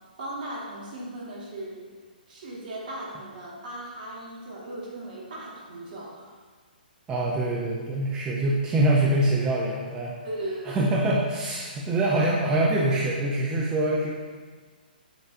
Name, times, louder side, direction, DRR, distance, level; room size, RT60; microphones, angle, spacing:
voice 1, 0.2-1.8 2.3-6.4 10.2-10.8, right 1 dB, 60° right, -4 dB, 1.2 m, -37 dB
voice 2, 7.1-10.2 10.6-14.1, right 1 dB, 15° right, -3 dB, 0.4 m, -24 dB
6.5 x 2.3 x 2.5 m, 1.5 s
figure-of-eight pair, 130°, 5 cm